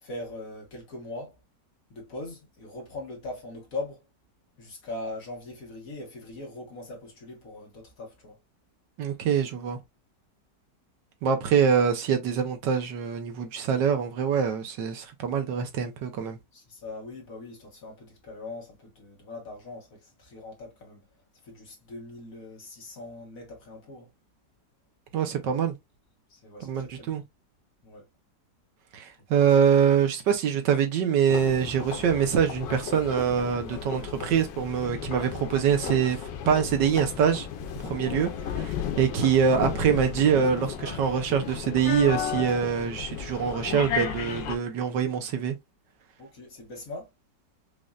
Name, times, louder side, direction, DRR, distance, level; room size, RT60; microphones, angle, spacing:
voice 1, 0.0-1.4 1.9-4.0 4.6-8.4 16.5-21.1 21.4-24.1 26.3-27.2 27.8-28.1 29.3-29.5 46.2-47.1, left 2 dB, 50° left, 1.7 m, -41 dB
voice 2, 9.0-9.8 11.2-16.4 25.1-25.7 26.6-27.2 28.9-36.2 36.5-37.5 37.8-45.6, right 7 dB, 75° right, 1.5 m, -24 dB
sound 1, 31.3-44.6, left 8 dB, 90° left, 1.4 m, -34 dB
5.3 x 2.6 x 2.4 m
omnidirectional pair, 1.9 m